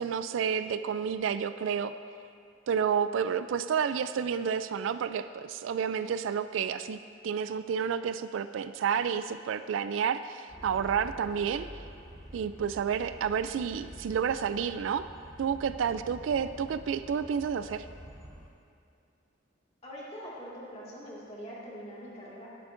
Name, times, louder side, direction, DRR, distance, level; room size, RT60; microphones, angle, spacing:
voice 1, 0.0-1.9 2.7-7.0 7.2-11.7 12.3-15.1 15.4-17.8, right 7 dB, 85° right, 12 dB, 0.3 m, -30 dB
sound 1, 10.5-18.5, equal, 15° left, 0.9 m, -48 dB
voice 2, 19.8-22.5, equal, 35° left, -6 dB, 2.0 m, -43 dB
11.0 x 10.5 x 2.6 m, 2.5 s
head